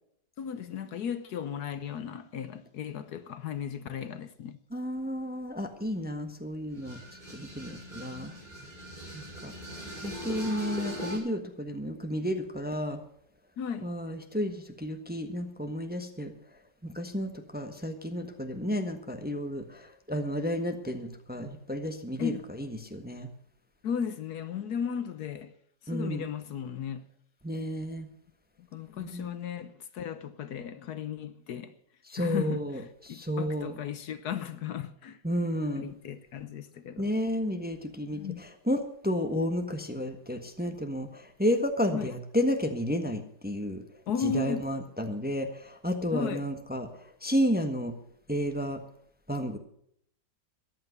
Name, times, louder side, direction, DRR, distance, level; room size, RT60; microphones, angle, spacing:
voice 1, 0.4-4.6 13.6-13.9 22.2-22.4 23.8-25.5 25.8-27.0 28.7-31.7 32.2-35.2 35.8-37.1 38.1-38.4 41.9-42.1 44.1-44.6 46.1-46.5, left 7 dB, 65° left, 1.3 m, -35 dB
voice 2, 4.7-7.0 7.3-8.3 9.1-9.5 10.0-13.0 13.8-16.3 16.8-22.3 22.6-23.3 25.9-26.3 27.4-28.1 29.0-29.3 32.1-33.7 35.2-35.9 37.0-43.8 44.2-46.9 47.2-47.9 48.3-48.8 49.3-49.6, equal, 5° right, 1.1 m, -32 dB
sound 1, 6.7-11.2, equal, 25° right, 6.2 m, -40 dB
14.5 x 10.5 x 6.8 m
omnidirectional pair, 1.9 m